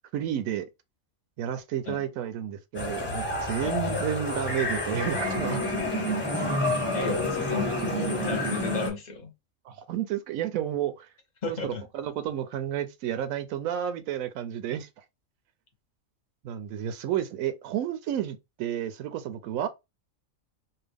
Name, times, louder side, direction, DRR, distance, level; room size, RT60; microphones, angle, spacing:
voice 1, 0.1-0.7 1.4-5.6 9.7-11.1 11.5-14.9 16.4-19.7, right 10 dB, 90° right, 1.0 m, -31 dB
sound 1, 2.7-8.9, left 1 dB, 10° left, 0.7 m, -29 dB
voice 2, 3.6-3.9 6.9-9.3 11.4-11.8, left 4 dB, 40° left, 0.8 m, -34 dB
2.8 x 2.2 x 3.4 m
omnidirectional pair, 1.4 m